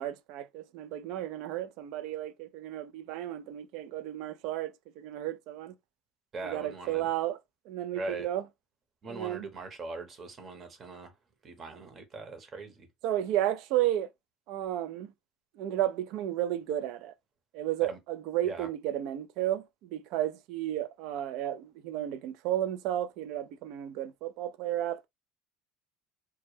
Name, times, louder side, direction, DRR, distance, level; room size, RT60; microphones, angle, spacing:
voice 1, 0.0-5.7 6.4-7.4 7.7-8.4 9.1-9.5 13.0-14.1 14.5-15.1 15.6-17.1 17.5-19.6 19.9-25.1, right 12 dB, 70° right, 0.3 m, -33 dB
voice 2, 6.3-7.1 7.9-8.3 9.0-11.1 11.4-12.9 17.8-18.0 18.4-18.7, right 3 dB, 35° right, 0.9 m, -41 dB
2.2 x 2.1 x 3.2 m
supercardioid pair, 95°, 0 cm